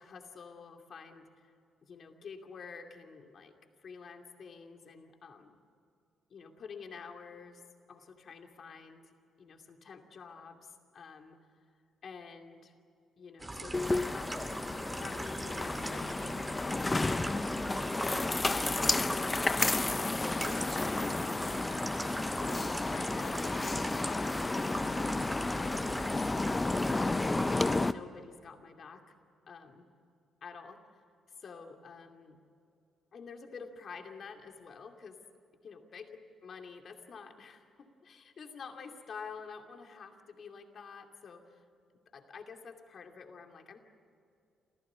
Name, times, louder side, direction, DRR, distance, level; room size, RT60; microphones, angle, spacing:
voice 1, 0.0-1.5 1.8-3.5 3.8-5.6 6.3-7.6 7.9-9.1 9.4-11.5 12.0-12.7 13.2-14.3 15.0-16.9 17.3-17.7 18.0-20.0 20.4-21.5 22.4-26.2 26.9-29.0 29.5-29.9 30.4-31.0 31.4-32.4 33.1-35.2 35.6-36.1 36.4-41.6 42.1-43.8, left 5 dB, 55° left, 4 dB, 2.6 m, -49 dB
sound 1, 13.4-27.9, right 2 dB, 20° right, 2.2 m, -41 dB
sound 2, 13.7-27.9, left 2 dB, 20° left, 0.6 m, -32 dB
27.5 x 15.0 x 9.7 m, 2.5 s
cardioid pair, 90°, 0 cm